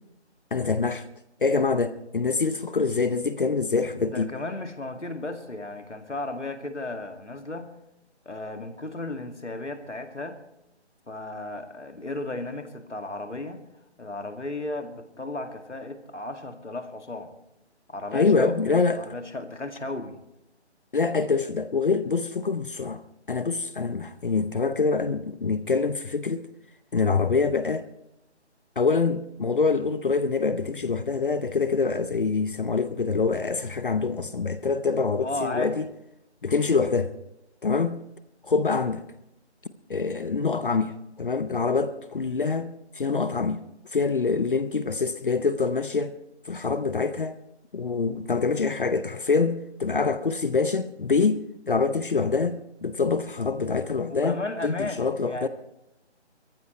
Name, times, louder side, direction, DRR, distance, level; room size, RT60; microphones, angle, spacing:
voice 1, 0.5-1.0 1.4-4.3 18.1-19.1 20.9-23.0 23.3-26.5 26.9-27.9 28.8-35.9 36.4-37.1 37.6-38.0 38.4-39.1 39.9-43.6 43.9-46.1 46.5-47.4 47.7-55.5, left 4 dB, 50° left, 0.8 m, -25 dB
voice 2, 4.0-7.7 8.3-10.4 11.1-13.6 14.0-17.3 17.9-20.2 35.2-35.8 38.7-38.9 54.1-55.5, left 2 dB, 85° left, 2.2 m, -34 dB
22.0 x 14.5 x 3.1 m
figure-of-eight pair, 155°, 34 cm